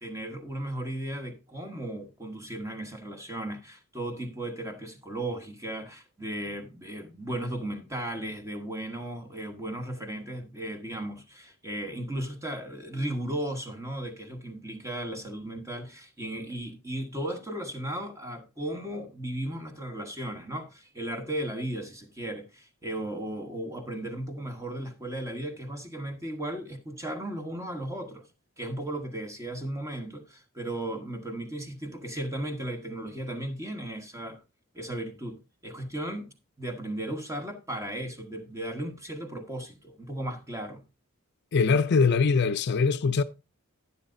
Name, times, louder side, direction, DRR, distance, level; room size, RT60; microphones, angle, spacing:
voice 1, 0.0-28.3 28.6-34.4 34.7-40.8, right 1 dB, 15° right, 1.3 m, -36 dB
voice 2, 41.5-43.2, left 5 dB, 55° left, 0.4 m, -22 dB
11.5 x 9.7 x 2.6 m
head